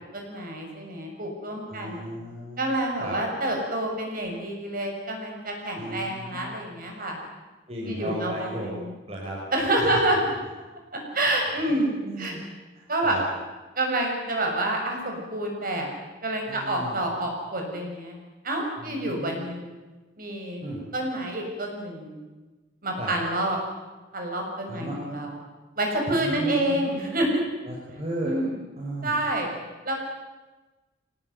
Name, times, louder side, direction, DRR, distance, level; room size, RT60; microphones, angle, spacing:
voice 1, 0.1-2.1 2.6-7.2 7.9-8.9 9.5-10.2 10.9-12.4 12.9-13.2 13.8-15.9 16.2-18.2 18.4-19.8 20.2-20.6 20.9-22.2 22.8-23.6 24.1-25.3 25.8-27.4 28.2-28.6 29.0-29.5 29.8-29.9, right 1 dB, 50° right, 2 dB, 7.1 m, -28 dB
voice 2, 1.7-2.7 3.0-3.2 5.8-6.5 7.7-8.7 9.1-9.4 9.8-10.0 11.7-11.8 12.0-12.4 12.7-13.3 16.5-17.0 18.8-19.4 20.6-20.8 23.0-23.1 24.7-25.0 26.1-26.8 27.6-28.4 28.8-29.1, right 1 dB, 35° right, -4 dB, 5.2 m, -35 dB
24.5 x 19.5 x 9.5 m, 1.2 s
head